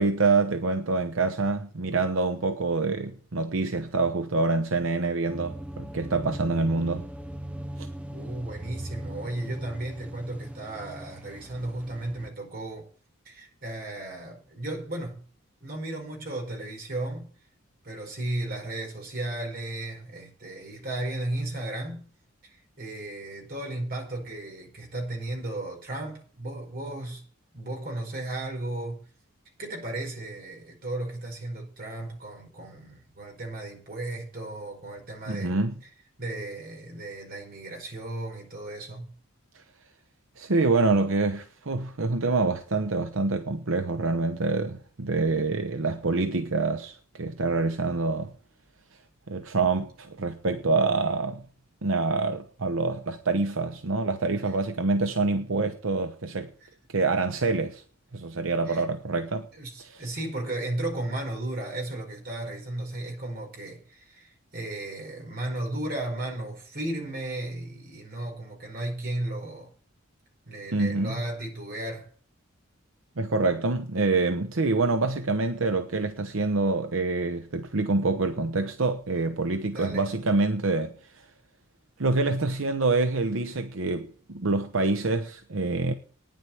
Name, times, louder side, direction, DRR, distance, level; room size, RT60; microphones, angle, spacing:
voice 1, 0.0-7.1 7.8-7.9 35.3-35.7 39.5-39.6 40.4-48.3 49.3-51.4 51.8-56.5 56.9-57.8 58.1-59.5 59.8-60.0 70.7-71.2 73.2-81.3 82.0-85.9, right 3 dB, 75° right, 0.9 m, -26 dB
sound 1, 5.2-12.3, right 1 dB, 5° right, 0.6 m, -39 dB
voice 2, 8.1-12.9 13.2-15.2 15.6-17.3 17.8-22.1 22.4-27.2 27.5-29.0 29.6-35.5 36.2-39.1 56.6-56.7 58.7-58.8 59.5-69.7 70.5-72.1 79.7-80.0, right 1 dB, 45° right, 4.8 m, -35 dB
9.8 x 7.5 x 8.4 m
head